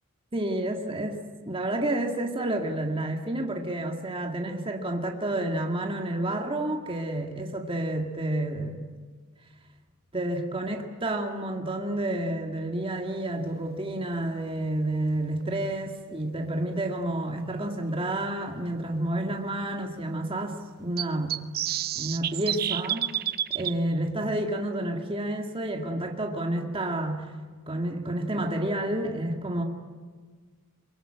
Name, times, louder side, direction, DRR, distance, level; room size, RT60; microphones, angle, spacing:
voice 1, 0.3-8.9 10.1-21.4 22.0-23.1 23.5-27.3 27.7-29.6, right 1 dB, 25° right, 3 dB, 2.0 m, -30 dB
sound 1, 15.4-15.5 17.5-17.6 18.1-18.2 18.4-18.5 21.0-23.7, right 11 dB, 45° right, 0.7 m, -29 dB
23.5 x 23.0 x 8.8 m, 1.5 s
head